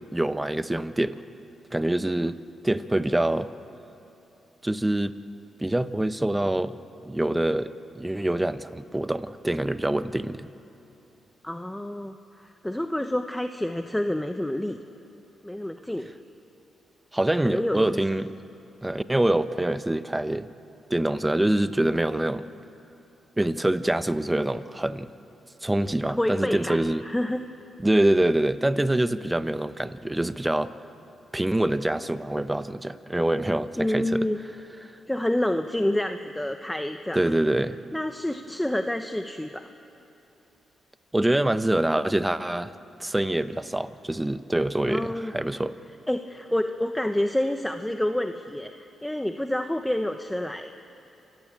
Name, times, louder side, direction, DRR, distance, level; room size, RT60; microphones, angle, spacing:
voice 1, 0.1-1.2 1.7-2.4 2.6-3.5 4.6-5.1 5.6-6.8 7.0-10.5 17.1-18.3 18.8-20.5 20.9-22.5 23.4-25.1 25.6-27.0 27.8-30.7 31.3-34.3 37.1-37.8 41.1-42.7 43.0-45.8, right 1 dB, 15° right, 12 dB, 1.0 m, -25 dB
voice 2, 11.4-14.8 15.4-16.1 17.4-18.0 26.2-27.4 33.8-34.4 35.1-37.2 37.9-39.7 44.9-45.3 46.1-50.7, left 1 dB, 10° left, 7 dB, 1.1 m, -28 dB
27.5 x 15.5 x 8.9 m, 2.9 s
supercardioid pair, 55°, 0 cm